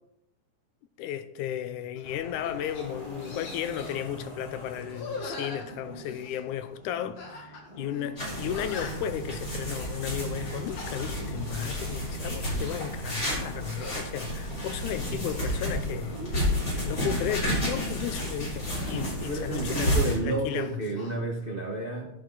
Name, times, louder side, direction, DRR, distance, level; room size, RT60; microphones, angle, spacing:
voice 1, 1.0-16.5 16.9-20.0 20.2-20.8, left 10 dB, 80° left, 2.1 m, -34 dB
sound 1, 2.0-2.1 2.4-2.8 3.2-4.1 4.9-6.4 7.2-7.7 7.9-8.0 8.5-9.2 9.6-9.9 10.5-11.0 11.4-11.7 12.3-12.9 13.7-14.1 14.6-15.5 16.0-17.0 18.8-20.2 20.5-21.2, left 3 dB, 60° left, 3.0 m, -42 dB
sound 2, 2.0-18.3, equal, 10° left, 3.8 m, -48 dB
sound 3, 8.2-20.1, equal, 30° left, 5.2 m, -31 dB
voice 2, 19.2-22.1, right 2 dB, 85° right, 0.4 m, -31 dB
12.0 x 10.5 x 4.1 m
omnidirectional pair, 3.6 m